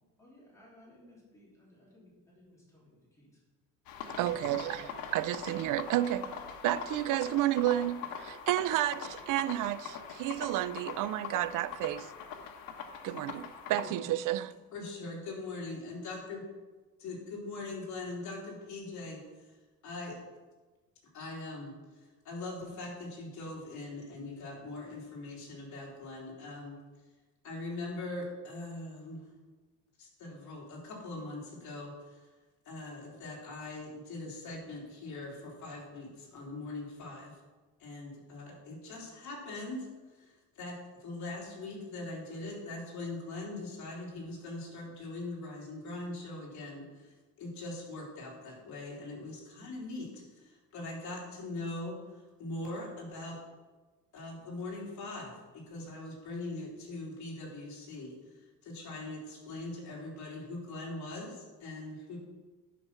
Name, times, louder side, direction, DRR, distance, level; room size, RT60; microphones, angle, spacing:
voice 1, 0.2-3.4 4.1-4.9, left 1 dB, 10° left, 3.5 m, -58 dB
sound 1, 3.9-13.9, left 7 dB, 75° left, 1.3 m, -42 dB
voice 2, 4.2-6.3 6.6-12.1 13.0-14.5, right 14 dB, 65° right, 0.5 m, -31 dB
voice 3, 14.7-16.4 17.0-19.6 19.8-20.2 21.1-26.8 27.4-29.3 30.0-32.3 32.6-37.4 37.8-53.4 54.1-62.2, left 2 dB, 55° left, 3.5 m, -42 dB
10.5 x 6.0 x 5.7 m
cardioid pair, 150°, 34 cm